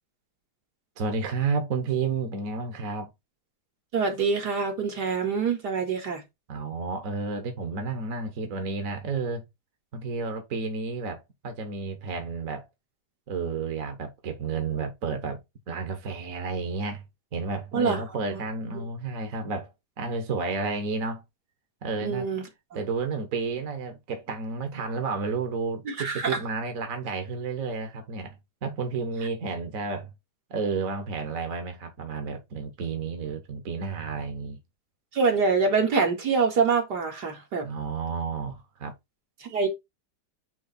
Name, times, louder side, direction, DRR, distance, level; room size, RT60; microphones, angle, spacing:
voice 1, 1.0-3.1 6.5-9.4 9.9-12.7 13.3-15.4 15.7-17.0 17.3-19.7 20.0-21.2 21.8-22.3 22.7-28.4 28.6-30.1 30.5-34.6 37.6-38.9, right 4 dB, 55° right, 1.6 m, -31 dB
voice 2, 3.9-6.2 17.7-18.0 18.3-18.4 22.0-22.4 25.9-26.4 35.1-37.7 39.4-39.7, right 5 dB, 75° right, 2.7 m, -25 dB
9.3 x 3.3 x 4.2 m
omnidirectional pair, 1.8 m